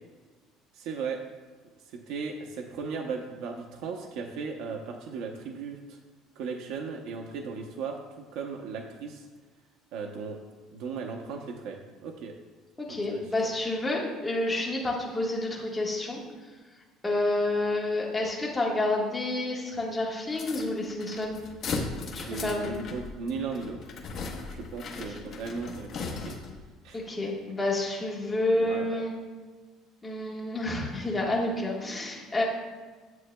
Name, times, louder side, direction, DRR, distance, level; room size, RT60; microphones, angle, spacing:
voice 1, 0.7-1.2 2.1-6.0 6.4-9.2 9.9-10.4 10.7-12.3 12.9-13.2 22.1-23.9 24.5-25.9 26.3-26.4 26.8-27.3 28.5-28.9, right 5 dB, 75° right, 3 dB, 0.7 m, -36 dB
voice 2, 12.8-16.2 17.0-21.4 22.1-22.7 25.1-25.4 26.9-29.2 30.0-32.4, left 2 dB, 10° left, -3 dB, 1.3 m, -29 dB
sound 1, 20.3-26.6, left 4 dB, 40° left, 1.0 m, -37 dB
9.3 x 7.8 x 2.2 m, 1.4 s
cardioid pair, 165°, 0 cm